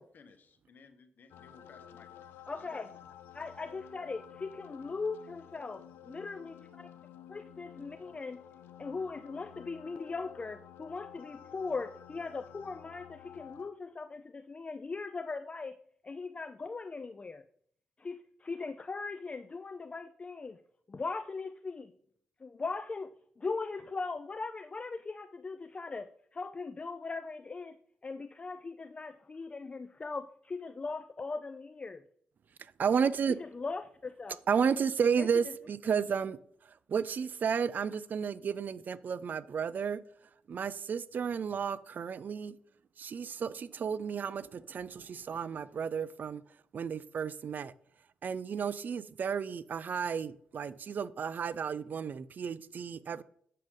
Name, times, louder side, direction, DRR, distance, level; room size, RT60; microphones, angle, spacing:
voice 1, 0.1-2.8, left 5 dB, 60° left, 1.1 m, -58 dB
sound 1, 1.3-13.7, left 9 dB, 90° left, 0.5 m, -52 dB
voice 2, 2.5-2.9 3.3-5.8 6.1-6.9 7.3-8.4 8.8-15.8 16.0-17.4 18.0-20.6 20.9-21.9 22.4-27.8 28.0-32.0 33.3-34.4 35.2-35.3, left 4 dB, 35° left, 0.4 m, -39 dB
voice 3, 32.8-33.4 34.5-36.4 36.9-40.0 40.5-42.6 43.0-46.4 46.7-47.7 48.2-53.2, right 6 dB, 55° right, 0.4 m, -32 dB
7.6 x 6.5 x 3.6 m
cardioid pair, 75°, 4 cm